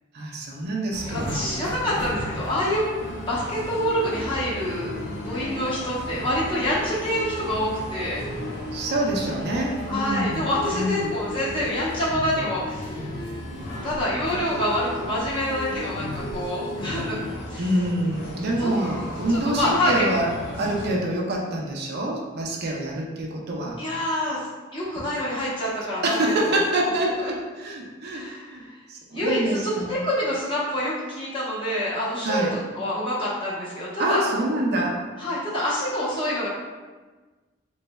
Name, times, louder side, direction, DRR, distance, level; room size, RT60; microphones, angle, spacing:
voice 1, 0.1-1.5 8.7-11.1 17.6-20.3 20.6-23.8 26.0-28.2 28.5-30.0 32.2-32.5 34.0-35.0, right 1 dB, 55° right, -1 dB, 0.5 m, -26 dB
sound 1, 0.9-20.9, left 1 dB, 65° left, 0.7 m, -34 dB
voice 2, 1.1-2.9 3.2-8.2 9.9-12.9 13.8-17.2 17.5-17.6 18.6-18.7 19.4-20.0 23.8-24.5 24.7-26.6 27.2-27.3 28.1-28.8 29.1-32.4 32.7-34.2 35.2-36.5, equal, 25° left, -8 dB, 0.9 m, -26 dB
3.3 x 3.1 x 2.2 m, 1.3 s
head